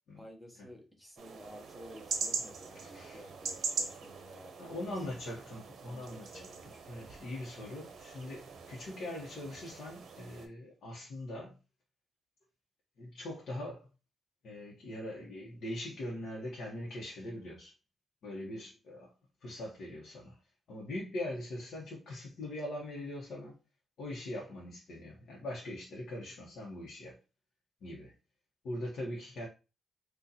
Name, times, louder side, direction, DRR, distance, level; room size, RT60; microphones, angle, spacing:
voice 1, 0.2-4.6 4.8-4.9 5.9-7.2, equal, 5° left, 0.8 m, -53 dB
sound 1, 1.2-10.5, right 5 dB, 75° right, 0.6 m, -42 dB
voice 2, 2.7-3.2 4.6-11.6 13.0-13.9 14.4-17.7 18.2-19.1 19.4-20.4 20.7-23.6 24.0-27.2 27.8-28.1 28.6-29.5, left 1 dB, 70° left, 1.0 m, -42 dB
3.9 x 2.4 x 2.7 m
wide cardioid pair, 135°, 0 cm